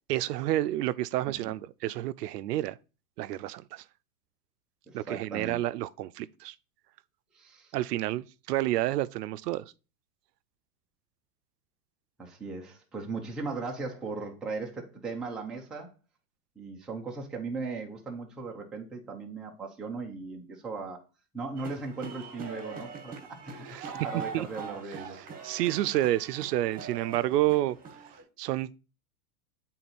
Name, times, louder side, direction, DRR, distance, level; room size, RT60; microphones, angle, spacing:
voice 1, 0.1-2.8 3.2-3.8 4.9-6.5 7.7-9.7 23.7-23.9 24.3-24.5 25.4-27.8 28.4-28.7, right 15 dB, 85° right, 0.5 m, -29 dB
voice 2, 4.9-5.6 7.3-7.8 12.2-15.9 16.6-21.0 21.3-25.2, right 4 dB, ahead, 0.3 m, -38 dB
sound 1, 21.6-28.2, right 5 dB, 20° right, 1.3 m, -42 dB
7.7 x 3.9 x 4.1 m
supercardioid pair, 140°, 47 cm